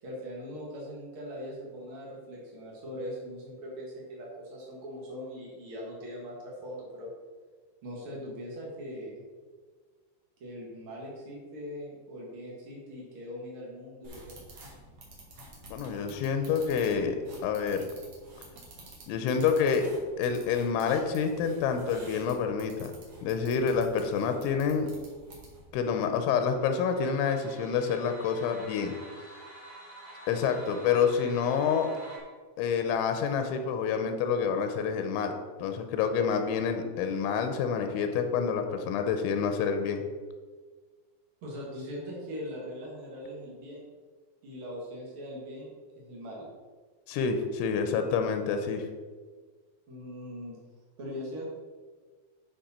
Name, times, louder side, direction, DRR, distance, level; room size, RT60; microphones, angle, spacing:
voice 1, 0.0-7.1 7.8-9.2 10.4-14.4 41.4-43.9 44.4-46.5 49.9-50.6 51.0-51.4, equal, 85° right, -4 dB, 1.1 m, -41 dB
sound 1, 14.0-25.7, right 1 dB, 60° right, 1.5 m, -50 dB
voice 2, 15.7-17.2 17.4-17.9 19.1-19.8 20.2-22.9 23.2-24.9 25.7-28.9 30.3-31.9 32.6-35.3 35.6-40.0 47.1-48.9, left 6 dB, 90° left, 7 dB, 3.1 m, -28 dB
sound 2, 26.5-32.2, right 1 dB, 20° left, 1.4 m, -48 dB
10.5 x 5.2 x 4.3 m, 1.5 s
omnidirectional pair, 5.4 m